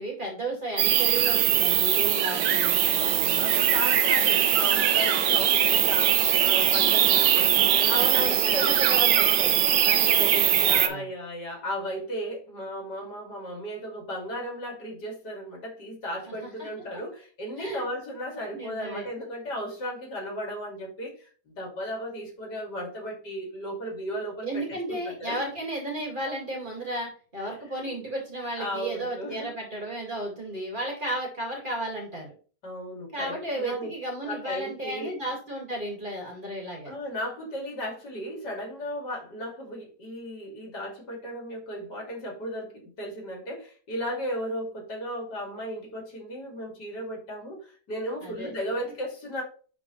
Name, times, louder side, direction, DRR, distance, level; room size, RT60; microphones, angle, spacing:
voice 1, 0.0-3.4 7.9-9.5 9.8-11.1 16.3-16.5 17.6-17.8 18.5-19.1 24.4-32.3 33.1-36.9 48.2-48.5, right 1 dB, 30° right, -1 dB, 2.2 m, -33 dB
sound 1, 0.8-10.9, right 10 dB, 85° right, 1.4 m, -21 dB
voice 2, 3.3-8.8 10.1-25.4 27.4-27.5 27.8-27.9 28.6-29.5 32.6-33.9 34.2-35.1 36.8-49.4, equal, 70° left, -1 dB, 3.1 m, -35 dB
11.0 x 4.0 x 3.1 m, 0.40 s
omnidirectional pair, 1.8 m